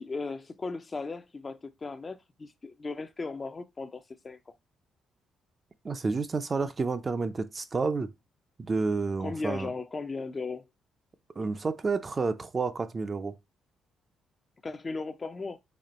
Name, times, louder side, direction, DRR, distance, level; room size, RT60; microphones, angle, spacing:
voice 1, 0.0-4.4 9.2-10.6 14.6-15.6, left 3 dB, 30° left, 0.4 m, -36 dB
voice 2, 5.8-8.1 8.6-9.7 11.4-13.4, right 4 dB, 30° right, 0.4 m, -30 dB
4.2 x 2.9 x 4.1 m
cardioid pair, 90°, 0 cm